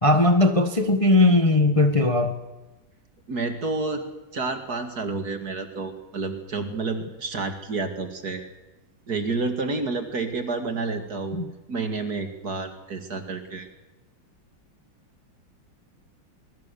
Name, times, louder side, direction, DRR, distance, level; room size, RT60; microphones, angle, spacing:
voice 1, 0.0-2.4 11.3-11.5, left 2 dB, 20° left, 6 dB, 1.3 m, -19 dB
voice 2, 3.3-4.1 4.3-8.5 9.1-11.4 11.7-13.7, right 3 dB, 50° right, 6 dB, 2.5 m, -29 dB
24.0 x 21.5 x 7.0 m, 1.1 s
omnidirectional pair, 2.3 m